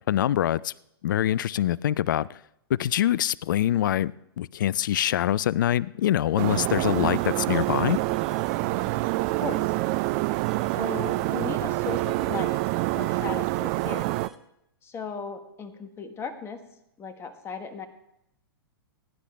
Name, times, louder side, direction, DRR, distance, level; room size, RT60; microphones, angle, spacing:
voice 1, 0.1-0.7 1.0-2.3 2.7-8.0, left 12 dB, 55° left, 0.4 m, -24 dB
sound 1, 6.4-14.3, right 21 dB, 35° right, 0.3 m, -26 dB
sound 2, 6.7-14.4, right 1 dB, ahead, 1.2 m, -49 dB
voice 2, 9.2-9.7 10.8-12.6 12.9-14.1 14.8-16.6 17.0-17.9, left 5 dB, 20° left, 1.5 m, -36 dB
19.5 x 10.0 x 3.4 m
figure-of-eight pair, 105°, 13 cm